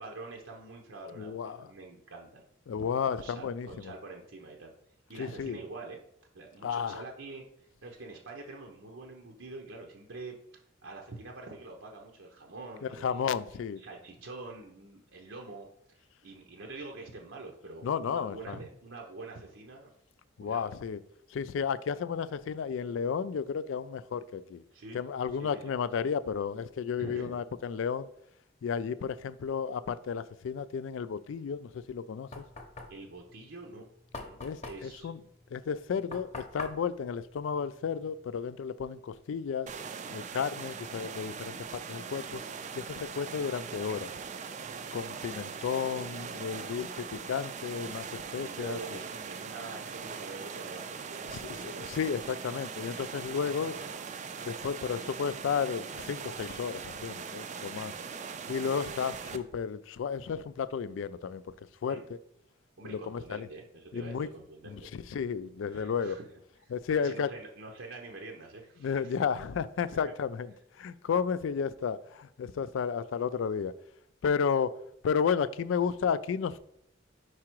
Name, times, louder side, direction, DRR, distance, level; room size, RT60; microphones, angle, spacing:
voice 1, 0.0-2.4 3.0-4.7 5.1-6.0 6.3-7.4 7.8-10.4 10.8-13.4 13.8-19.9 20.4-20.7 24.7-25.0 25.4-25.7 27.0-27.3 32.9-33.9 34.1-34.4 34.6-35.1 48.4-52.0 53.4-53.9 59.2-59.3 61.9-62.1 62.8-64.9 65.7-66.2 66.6-69.2 69.9-70.0, right 3 dB, 80° right, 0.8 m, -45 dB
voice 2, 1.2-1.7 2.7-3.9 5.2-5.6 6.6-7.0 12.8-13.8 17.8-18.6 20.4-21.0 21.3-24.6 24.9-28.1 28.6-32.4 34.4-35.2 35.5-39.7 40.1-42.4 42.7-44.1 44.9-48.8 51.3-53.8 54.4-57.9 58.5-61.4 61.8-62.0 62.8-63.5 63.9-64.3 64.7-66.2 66.7-67.3 68.8-70.5 70.8-73.7 74.2-74.7 75.0-76.6, left 6 dB, 80° left, 0.3 m, -33 dB
Knock, 31.8-38.2, left 3 dB, 35° left, 0.8 m, -45 dB
sound 1, 39.7-59.4, right 6 dB, 40° right, 0.4 m, -41 dB
4.8 x 4.8 x 4.5 m
head